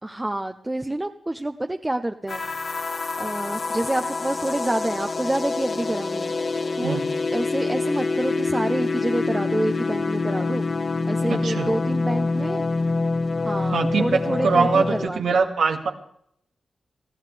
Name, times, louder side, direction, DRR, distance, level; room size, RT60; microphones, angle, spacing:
voice 1, 0.0-2.4 2.7-2.9 3.2-6.3 6.8-7.0 7.3-10.7 11.1-12.7 13.4-15.5, right 1 dB, 15° right, 6 dB, 0.8 m, -28 dB
sound 1, 2.3-15.1, left 3 dB, 55° left, 1.3 m, -26 dB
voice 2, 11.3-11.7 13.7-15.9, right 5 dB, 85° right, 3 dB, 2.1 m, -23 dB
22.5 x 15.0 x 3.4 m, 0.69 s
cardioid pair, 70°, 0 cm